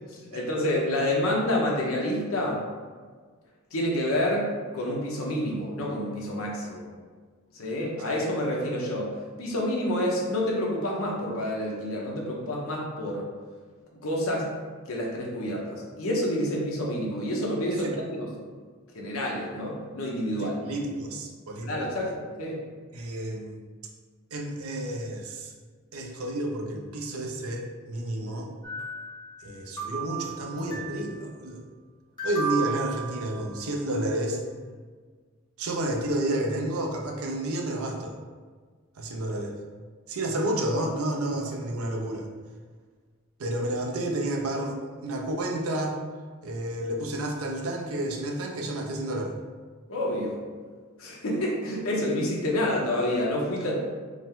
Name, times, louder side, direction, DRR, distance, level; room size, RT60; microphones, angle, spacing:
voice 1, 0.2-2.6 3.7-6.9 7.5-13.3 14.0-14.5 14.9-18.3 18.9-20.6 21.6-22.6 49.9-50.4 51.0-53.7, left 1 dB, 80° left, -2 dB, 0.9 m, -28 dB
voice 2, 20.4-21.9 22.9-23.6 24.3-25.5 25.9-28.5 29.4-31.6 32.2-34.4 35.6-38.2 39.0-39.5 40.1-42.3 43.4-46.0 46.4-49.4, right 1 dB, 90° right, 1 dB, 0.6 m, -30 dB
sound 1, 28.6-29.5 29.8-31.2 32.2-33.8, right 5 dB, 20° left, 1.1 m, -35 dB
4.9 x 2.1 x 3.6 m, 1.5 s
head